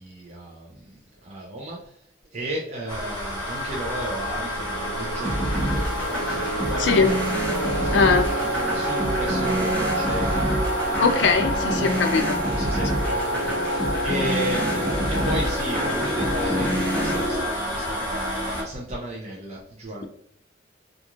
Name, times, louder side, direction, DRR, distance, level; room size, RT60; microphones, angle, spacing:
voice 1, 0.0-2.0 2.3-10.8 11.3-20.1, right 1 dB, 40° right, -4 dB, 0.5 m, -34 dB
sound 1, 2.9-18.6, equal, 30° left, 1.3 m, -30 dB
sound 2, 4.1-17.4, equal, 55° left, 1.2 m, -29 dB
sound 3, 5.2-17.2, right 1 dB, 10° left, 0.7 m, -28 dB
voice 2, 6.8-7.1 7.9-8.2 11.0-12.4, left 5 dB, 75° left, 6 dB, 0.4 m, -20 dB
2.9 x 2.5 x 2.4 m, 0.70 s
head